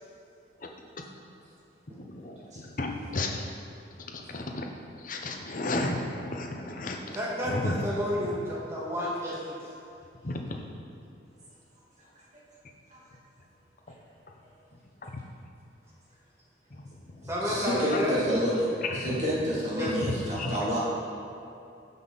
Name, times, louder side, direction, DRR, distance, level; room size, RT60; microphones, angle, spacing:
voice 1, 2.0-3.5 4.1-4.7 4.9-7.2 7.5-7.8 10.2-10.4 15.0-15.1 16.7-16.9 17.9-18.0 18.9-19.3 19.8-20.6, left 2 dB, 45° left, 2 dB, 0.9 m, -33 dB
voice 2, 7.1-9.6 17.3-18.2 19.7-19.9, equal, 15° right, -6 dB, 2.0 m, -31 dB
voice 3, 17.4-20.8, equal, 40° right, -7 dB, 2.6 m, -29 dB
14.5 x 5.7 x 4.2 m, 2.7 s
head